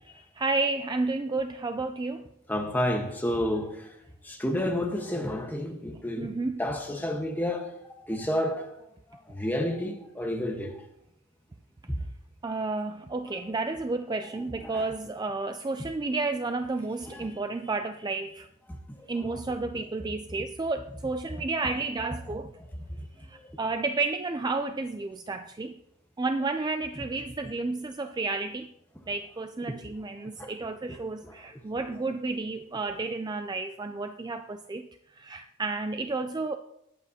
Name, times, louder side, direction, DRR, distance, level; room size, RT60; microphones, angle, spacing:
voice 1, 0.4-2.3 6.2-6.6 12.4-18.5 19.1-22.5 23.2-25.8 26.2-28.7 29.1-36.6, right 3 dB, 20° right, 0.3 m, -31 dB
voice 2, 2.5-3.9 4.2-6.3 6.6-7.7 8.1-8.7 9.1-10.8 13.5-13.6 14.7-14.8 17.1-17.4 19.0-19.1 23.3-23.6 30.4-30.5, left 1 dB, 10° left, 1.2 m, -30 dB
19.5 x 8.4 x 2.8 m
head